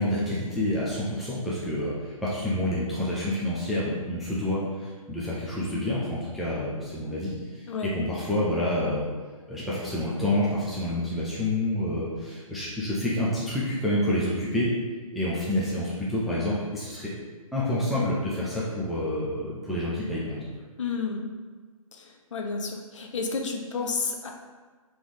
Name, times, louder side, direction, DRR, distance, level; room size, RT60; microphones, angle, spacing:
voice 1, 0.0-9.1 9.5-14.7 15.1-17.1 17.5-20.5, left 1 dB, ahead, -9 dB, 0.3 m, -28 dB
voice 2, 20.8-21.2 21.9-24.3, left 4 dB, 60° left, 2 dB, 0.7 m, -31 dB
3.5 x 3.0 x 3.9 m, 1.4 s
figure-of-eight pair, 135°, 18 cm